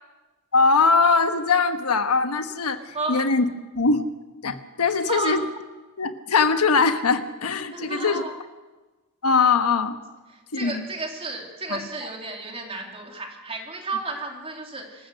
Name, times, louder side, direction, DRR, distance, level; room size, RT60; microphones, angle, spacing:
voice 1, 0.5-2.8 3.1-3.4 3.7-4.1 4.4-5.4 6.0-8.2 9.2-9.9 10.6-10.7, left 4 dB, 80° left, 8 dB, 1.3 m, -21 dB
voice 2, 2.9-3.3 4.8-5.5 7.7-8.3 10.3-15.1, right 3 dB, 25° right, 1 dB, 3.2 m, -32 dB
26.0 x 15.5 x 6.5 m, 1.2 s
head